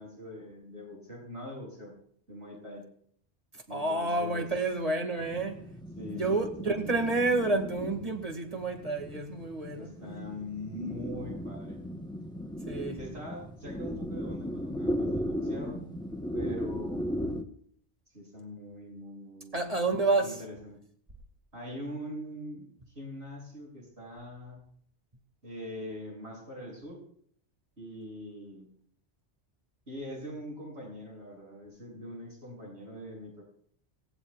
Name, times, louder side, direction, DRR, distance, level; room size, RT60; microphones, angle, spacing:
voice 1, 0.0-1.9 2.3-2.9 3.7-4.4 6.0-6.9 9.7-11.8 13.0-15.8 16.3-17.3 18.1-19.7 20.2-20.8 21.5-24.6 25.4-27.0 27.8-28.7 29.9-33.4, left 1 dB, 75° right, 7.3 m, -42 dB
voice 2, 3.7-5.7 6.1-9.9 12.7-13.0 19.5-20.4, right 3 dB, 35° right, 2.1 m, -29 dB
sound 1, 5.2-17.4, equal, 5° left, 1.0 m, -36 dB
25.5 x 18.5 x 2.4 m
omnidirectional pair, 1.1 m